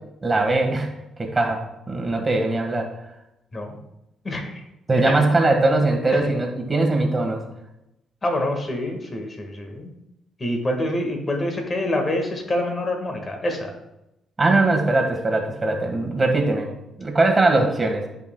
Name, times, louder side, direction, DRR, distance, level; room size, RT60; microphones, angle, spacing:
voice 1, 0.2-0.9 1.2-2.9 4.9-7.4 14.4-16.7 17.0-18.1, right 2 dB, 25° right, 3 dB, 1.5 m, -21 dB
voice 2, 4.2-4.6 6.1-6.2 8.2-9.9 10.4-13.7, left 1 dB, 30° left, 3 dB, 1.6 m, -26 dB
10.5 x 5.4 x 2.2 m, 0.88 s
cardioid pair, 90°, 0 cm